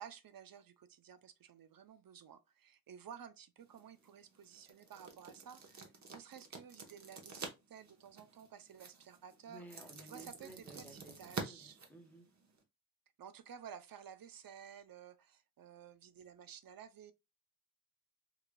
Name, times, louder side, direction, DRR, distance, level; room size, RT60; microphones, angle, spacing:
voice 1, 0.0-5.8 6.1-9.6 10.1-11.8 13.2-17.1, right 8 dB, 75° right, 0.6 m, -54 dB
sound 1, 3.6-12.6, right 4 dB, 50° right, 0.9 m, -49 dB
voice 2, 9.5-12.3, right 1 dB, 5° left, 1.1 m, -55 dB
4.8 x 2.5 x 2.2 m
wide cardioid pair, 95°, 35 cm